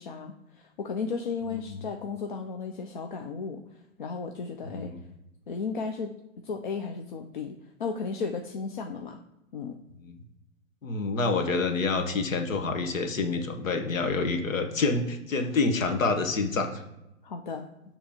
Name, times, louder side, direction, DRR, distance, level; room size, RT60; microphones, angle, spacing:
voice 1, 0.0-3.6 4.0-4.9 5.5-6.1 6.4-7.5 7.8-9.2 9.5-9.8 17.2-17.6, left 5 dB, 40° left, 5 dB, 0.4 m, -34 dB
voice 2, 1.5-1.8 4.6-5.0 10.0-10.2 10.8-16.8, left 3 dB, 70° left, 6 dB, 1.1 m, -28 dB
6.8 x 2.9 x 5.0 m, 0.91 s
hypercardioid pair, 135°, 40 cm